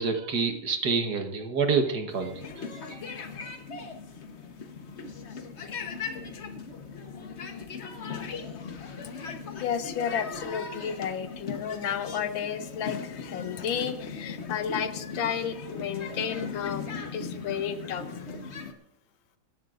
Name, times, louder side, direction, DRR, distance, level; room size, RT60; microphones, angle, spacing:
voice 1, 0.0-3.0, right 5 dB, 55° right, 5 dB, 1.6 m, -28 dB
sound 1, 2.1-18.7, left 5 dB, 45° left, 1.0 m, -38 dB
voice 2, 9.6-18.1, left 8 dB, 70° left, 9 dB, 1.5 m, -32 dB
25.5 x 11.0 x 2.5 m, 0.88 s
omnidirectional pair, 2.3 m